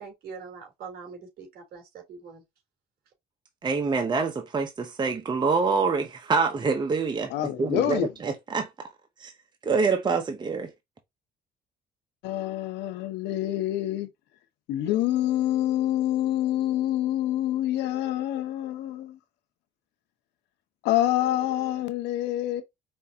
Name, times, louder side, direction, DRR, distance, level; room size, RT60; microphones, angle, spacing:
voice 1, 0.0-2.4, right 5 dB, 65° right, 3.5 m, -43 dB
voice 2, 3.6-7.3 7.6-8.9 9.2-9.3 9.6-10.7, right 4 dB, 25° right, 0.9 m, -26 dB
voice 3, 7.3-8.1 12.2-14.1 14.7-19.2 20.8-22.6, left 13 dB, 90° left, 1.0 m, -26 dB
5.3 x 3.5 x 2.8 m
cardioid pair, 110°, 17 cm